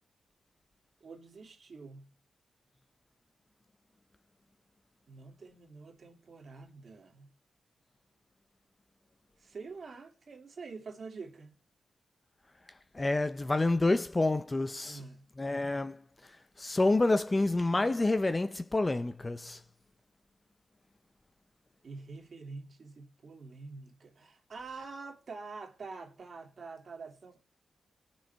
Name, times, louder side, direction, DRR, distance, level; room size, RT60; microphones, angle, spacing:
voice 1, 1.0-2.1 5.1-7.3 9.4-11.6 14.8-15.3 21.8-27.4, right 4 dB, 55° right, 2.6 m, -46 dB
voice 2, 12.9-15.0 15.4-16.0 16.6-19.6, left 2 dB, 25° left, 0.7 m, -28 dB
19.0 x 6.5 x 4.6 m
cardioid pair, 85°, 0 cm